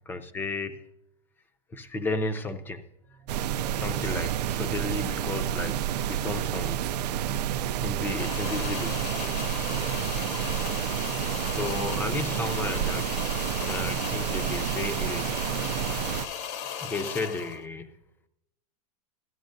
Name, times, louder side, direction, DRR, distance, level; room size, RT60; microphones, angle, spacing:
voice 1, 0.1-0.8 1.7-2.8 3.7-6.8 7.8-8.9 11.4-13.1 13.6-15.3 16.8-17.9, left 2 dB, 10° left, 8 dB, 0.5 m, -33 dB
sound 1, 3.1-5.4, right 8 dB, 40° right, 0.8 m, -42 dB
sound 2, 3.3-16.3, right 10 dB, 80° right, 0.5 m, -30 dB
sound 3, 8.1-17.7, left 8 dB, 40° left, 0.8 m, -36 dB
16.5 x 13.0 x 2.6 m, 0.85 s
supercardioid pair, 145°, 20 cm